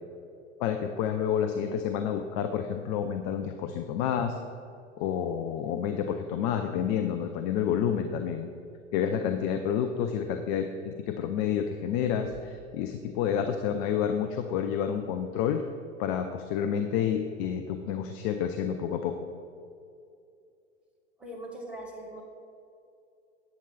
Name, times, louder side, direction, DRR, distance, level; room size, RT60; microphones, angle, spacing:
voice 1, 0.6-4.4 5.0-8.5 8.9-15.6 16.0-19.2, left 8 dB, 30° left, 6 dB, 0.4 m, -29 dB
voice 2, 21.2-22.2, right 1 dB, 5° right, -3 dB, 1.7 m, -41 dB
8.7 x 7.2 x 4.1 m, 2.5 s
figure-of-eight pair, 90°, 38 cm